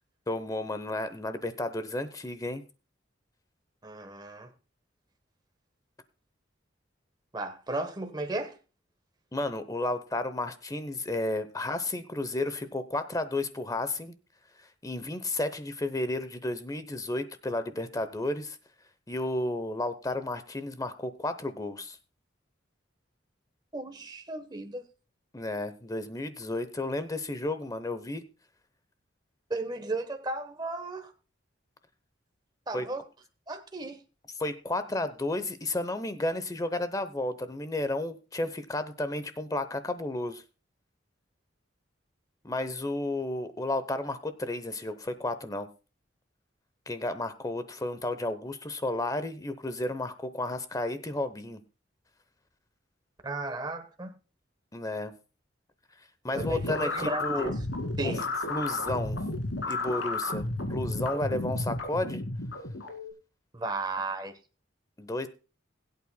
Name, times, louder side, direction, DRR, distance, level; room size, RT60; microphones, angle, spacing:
voice 1, 0.3-2.6 9.3-14.1 14.8-18.6 19.1-22.0 25.3-28.2 32.7-32.9 34.4-40.4 42.4-45.7 46.9-51.6 54.7-55.1 56.2-57.5 58.0-59.2 59.6-62.2 65.0-65.3, left 2 dB, 20° left, 0.8 m, -32 dB
voice 2, 3.8-4.5 7.3-8.6 23.7-24.8 29.5-31.1 32.7-33.0 33.5-34.0 53.2-54.1 56.3-57.5 58.0-58.3 63.5-64.3, right 2 dB, 20° right, 1.0 m, -35 dB
sound 1, 56.3-63.1, left 2 dB, 75° left, 2.2 m, -32 dB
20.5 x 8.6 x 2.2 m
head